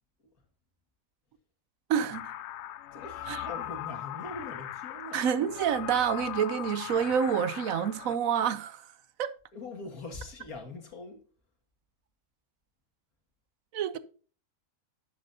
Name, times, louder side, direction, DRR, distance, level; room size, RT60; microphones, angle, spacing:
voice 1, 1.9-2.3 3.3-3.4 5.1-8.8 9.2-9.3 13.7-14.0, right 8 dB, 75° right, 1.1 m, -28 dB
sound 1, 2.1-8.2, left 12 dB, 65° left, 0.7 m, -39 dB
voice 2, 2.9-5.2 9.5-11.2, left 3 dB, 90° left, 2.4 m, -42 dB
11.5 x 8.4 x 2.7 m
omnidirectional pair, 1.5 m